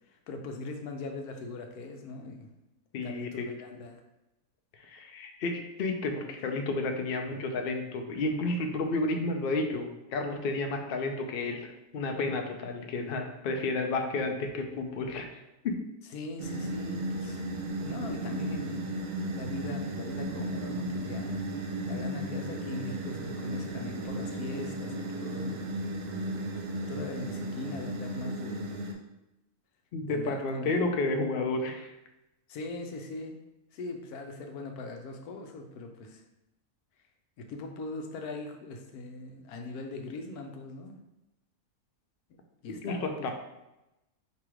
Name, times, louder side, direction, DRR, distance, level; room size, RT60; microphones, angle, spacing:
voice 1, 0.1-2.5 3.0-4.0 16.1-17.4 17.8-18.9 19.3-21.4 21.8-25.7 26.9-28.7 30.1-30.8 32.5-33.4 33.7-36.2 37.4-41.0 42.6-43.3, left 3 dB, 85° left, 4 dB, 1.1 m, -40 dB
voice 2, 2.9-3.5 4.9-15.3 15.6-15.8 29.9-31.9 42.8-43.3, left 2 dB, 70° left, 4 dB, 0.5 m, -31 dB
sound 1, 16.4-28.9, right 1 dB, 75° right, 1.1 m, -35 dB
4.8 x 2.9 x 3.0 m, 0.94 s
omnidirectional pair, 1.6 m